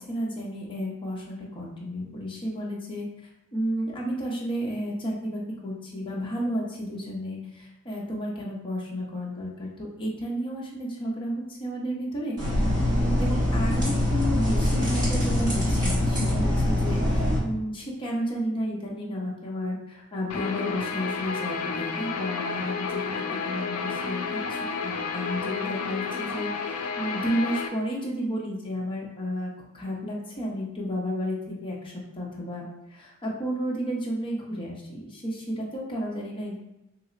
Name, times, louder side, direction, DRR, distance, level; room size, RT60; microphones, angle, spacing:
voice 1, 0.0-3.1 3.5-23.0 23.4-36.6, equal, 25° left, -4 dB, 0.7 m, -32 dB
sound 1, 12.4-17.4, left 1 dB, 20° right, 1.2 m, -24 dB
Guitar, 20.3-27.7, left 5 dB, 85° left, 0.4 m, -31 dB
3.1 x 2.1 x 3.8 m, 0.90 s
head